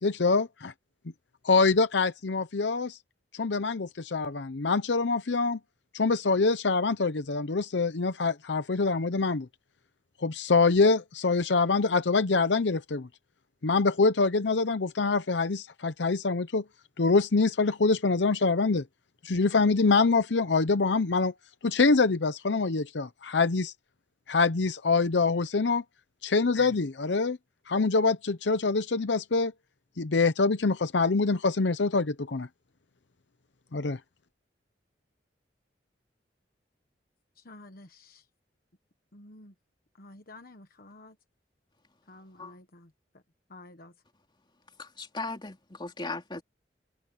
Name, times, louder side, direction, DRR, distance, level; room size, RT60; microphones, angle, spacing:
voice 1, 0.0-0.7 1.4-3.0 3.3-5.6 5.9-9.5 10.2-13.1 13.6-16.6 17.0-18.8 19.2-21.3 21.6-23.7 24.3-25.8 26.2-27.4 27.7-29.5 30.0-32.5 33.7-34.0, left 4 dB, 80° left, 0.8 m, -25 dB
voice 2, 37.4-38.2 39.1-39.5 40.0-41.1 42.1-42.9 43.5-43.9, left 2 dB, 55° left, 1.3 m, -50 dB
voice 3, 44.8-46.4, left 3 dB, 25° left, 3.1 m, -37 dB
head